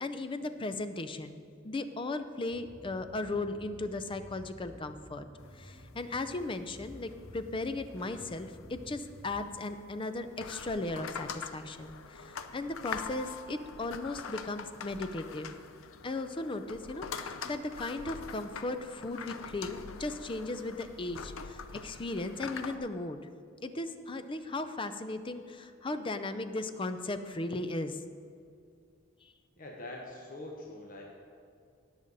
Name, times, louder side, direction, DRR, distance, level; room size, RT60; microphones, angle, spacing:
voice 1, 0.0-5.3 5.6-15.5 16.0-23.2 23.6-28.0, left 2 dB, 25° left, 10 dB, 0.5 m, -37 dB
sound 1, 2.5-9.5, equal, ahead, 1.8 m, -52 dB
sound 2, 5.4-22.8, left 5 dB, 85° left, 0.6 m, -45 dB
voice 2, 29.6-31.0, left 2 dB, 40° left, -1 dB, 1.2 m, -44 dB
18.5 x 6.6 x 4.1 m, 2.3 s
head